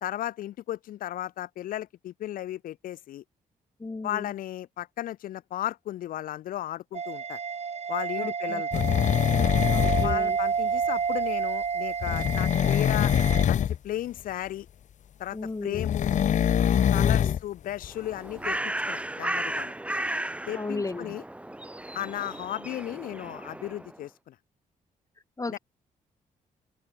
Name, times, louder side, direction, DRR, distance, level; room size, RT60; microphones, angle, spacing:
voice 1, 0.0-3.2 4.0-7.4 7.9-8.8 10.0-13.1 13.5-14.7 15.2-16.1 16.7-19.7 20.5-21.2 21.9-24.3 25.5-25.6, left 13 dB, 85° left, 1.4 m, -35 dB
voice 2, 3.8-4.3 8.2-8.6 9.7-10.4 15.3-15.9 16.9-17.4 20.5-21.2 25.4-25.6, left 3 dB, 25° left, 2.8 m, -35 dB
sound 1, 6.9-13.4, right 6 dB, 50° right, 2.8 m, -30 dB
sound 2, 8.7-10.2 12.0-13.8 15.7-17.4 17.8-17.9, left 9 dB, 60° left, 0.8 m, -23 dB
Bird, 17.9-24.0, right 1 dB, 10° right, 1.5 m, -34 dB
cardioid pair, 75°, 14 cm